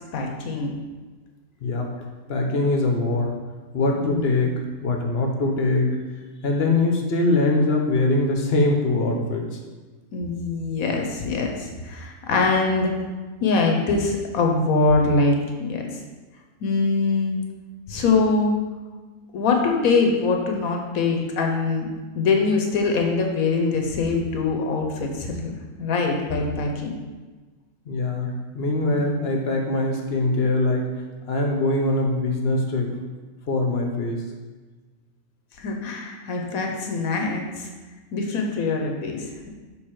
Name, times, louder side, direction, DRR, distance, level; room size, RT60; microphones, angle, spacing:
voice 1, 0.1-0.7 4.0-4.3 10.1-12.9 13.4-15.8 16.6-17.4 17.9-18.6 19.3-25.5 25.8-26.9 28.9-29.0 35.6-37.7 38.1-39.5, left 3 dB, 80° left, 2 dB, 1.2 m, -23 dB
voice 2, 1.6-1.9 2.3-3.3 3.7-6.0 6.4-9.4 27.9-30.9 31.3-32.9 33.5-34.3, left 2 dB, 50° left, 1 dB, 1.0 m, -22 dB
6.3 x 3.7 x 4.6 m, 1.3 s
omnidirectional pair, 1.5 m